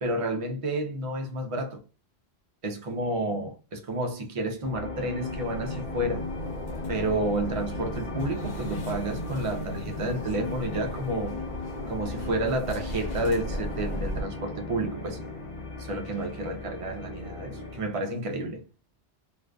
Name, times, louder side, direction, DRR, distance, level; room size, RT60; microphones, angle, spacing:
voice 1, 0.0-1.8 2.6-6.3 6.9-11.4 11.9-15.2 15.8-18.6, right 1 dB, 60° right, 0.3 m, -30 dB
sound 1, 4.6-18.0, left 3 dB, 40° left, 0.5 m, -37 dB
sound 2, 5.3-14.2, left 1 dB, 85° left, 1.0 m, -37 dB
2.5 x 2.3 x 2.2 m
omnidirectional pair, 1.1 m